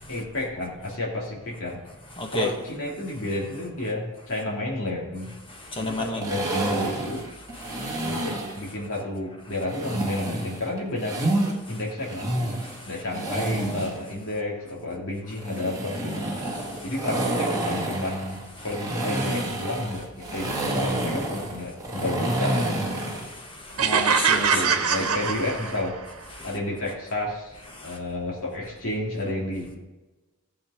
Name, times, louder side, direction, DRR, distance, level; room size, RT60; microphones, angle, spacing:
voice 1, 0.1-1.8 2.3-5.3 5.8-7.2 8.0-12.3 12.8-16.3 16.8-22.6 24.3-26.0 26.4-27.6 27.8-29.8, left 2 dB, 60° left, -4 dB, 3.0 m, -31 dB
voice 2, 2.2-2.5 5.6-6.3 7.6-8.2 11.7-11.8 12.6-13.9 16.5-16.9 23.0-25.1 26.4-26.5 27.7-28.0, equal, 25° left, 2 dB, 1.4 m, -33 dB
sound 1, 6.2-8.6 9.7-11.5 12.0-14.0 15.4-23.3, right 1 dB, 15° right, 2.0 m, -28 dB
sound 2, 23.8-26.1, right 6 dB, 80° right, 1.2 m, -23 dB
16.0 x 7.4 x 5.0 m, 1.1 s
head